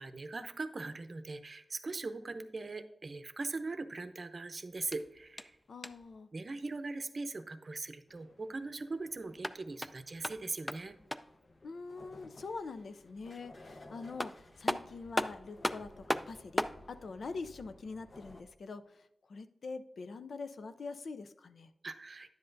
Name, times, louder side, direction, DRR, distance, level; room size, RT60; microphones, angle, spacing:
voice 1, 0.0-5.6 6.3-11.0 21.8-22.3, right 3 dB, 50° right, 9 dB, 0.6 m, -40 dB
sound 1, 4.8-6.2 9.2-11.4 13.7-13.8 14.2-16.8, left 1 dB, 10° left, 0.3 m, -37 dB
voice 2, 5.7-6.3 11.6-21.7, left 4 dB, 75° left, 11 dB, 0.4 m, -44 dB
sound 2, 8.1-18.4, left 2 dB, 40° left, 0.8 m, -57 dB
10.5 x 7.8 x 2.6 m, 0.93 s
wide cardioid pair, 85°, 0 cm